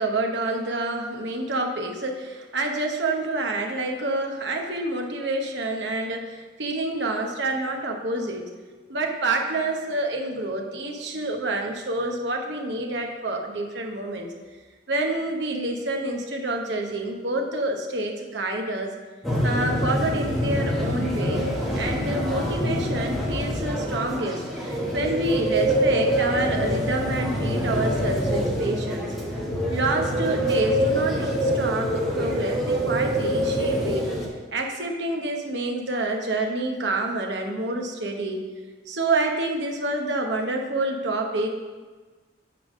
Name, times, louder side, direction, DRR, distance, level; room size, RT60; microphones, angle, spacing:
voice 1, 0.0-8.5 8.9-14.3 14.9-18.9 19.4-29.1 29.7-34.1 34.5-38.5 38.9-41.5, right 2 dB, 70° right, 2 dB, 0.9 m, -28 dB
sound 1, 19.2-34.3, equal, ahead, 1.1 m, -25 dB
8.5 x 3.4 x 6.1 m, 1.4 s
head